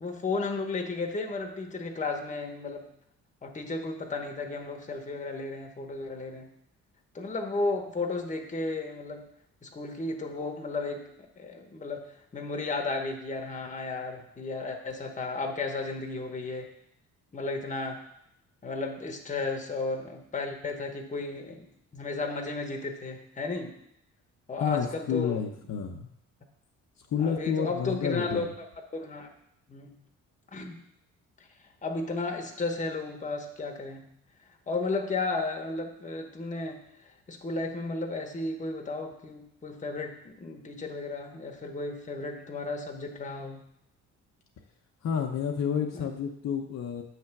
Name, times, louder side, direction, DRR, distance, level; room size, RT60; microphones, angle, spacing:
voice 1, 0.0-2.9 3.4-6.5 7.1-9.2 9.6-11.1 11.4-12.1 12.3-16.7 17.3-18.0 18.6-23.7 24.5-25.4 27.2-28.4 28.9-29.3 29.7-30.0 30.5-30.8 31.8-34.1 34.7-43.6 45.9-46.1, left 3 dB, 25° left, 2 dB, 1.0 m, -34 dB
voice 2, 24.6-26.1 27.0-28.5 45.0-47.0, left 7 dB, 60° left, 2 dB, 0.8 m, -30 dB
7.3 x 3.3 x 6.0 m, 0.77 s
cardioid pair, 90°, 30 cm